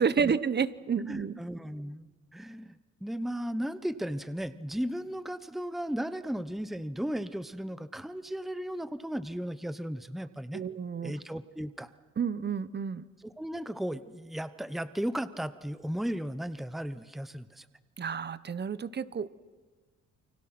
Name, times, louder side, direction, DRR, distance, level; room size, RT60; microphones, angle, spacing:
voice 1, 0.0-1.4 10.5-11.2 12.2-13.0 18.0-19.3, right 6 dB, 35° right, 16 dB, 0.9 m, -30 dB
voice 2, 1.1-10.6 11.0-11.9 13.2-17.7, equal, ahead, 13 dB, 0.9 m, -35 dB
29.5 x 24.5 x 6.1 m, 1.3 s
cardioid pair, 90°, 30 cm